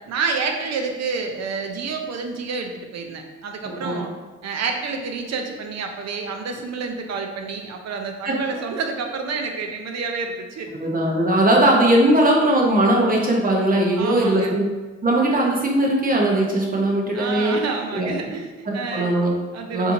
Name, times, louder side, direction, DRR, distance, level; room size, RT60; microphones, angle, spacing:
voice 1, 0.1-4.1 4.4-10.7 11.7-11.9 14.0-14.6 16.7-19.2 19.5-19.9, right 4 dB, 60° right, 4 dB, 0.6 m, -29 dB
voice 2, 3.6-4.0 8.3-8.4 10.7-14.6 15.0-17.5 17.9-18.1 18.7-19.4 19.7-19.9, right 1 dB, 30° right, -1 dB, 0.8 m, -19 dB
4.2 x 2.8 x 2.6 m, 1.3 s
cardioid pair, 90°, 30 cm